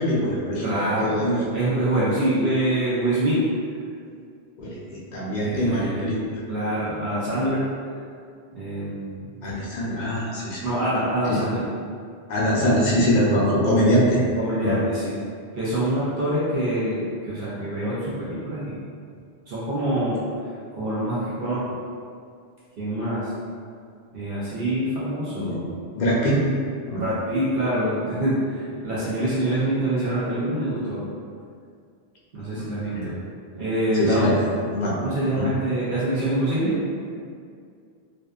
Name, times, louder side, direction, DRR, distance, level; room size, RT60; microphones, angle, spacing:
voice 1, 0.0-0.7 1.0-1.4 4.6-6.4 9.4-10.6 11.2-11.4 12.3-14.2 14.6-14.8 25.3-25.6 25.9-26.4 26.9-27.0 32.5-33.1 34.0-34.3 34.7-34.9 35.4-35.5, equal, 55° left, -6 dB, 0.5 m, -23 dB
voice 2, 0.6-1.2 1.5-3.4 5.3-6.0 6.5-7.6 8.5-9.2 10.6-11.6 14.4-15.1 15.6-17.0 17.2-18.7 19.5-20.2 20.8-21.6 22.8-23.3 24.1-25.7 27.0-31.0 32.3-33.1 33.5-34.3 35.0-36.7, right 1 dB, 60° right, -9 dB, 0.8 m, -25 dB
2.6 x 2.2 x 2.3 m, 2.2 s
omnidirectional pair, 1.2 m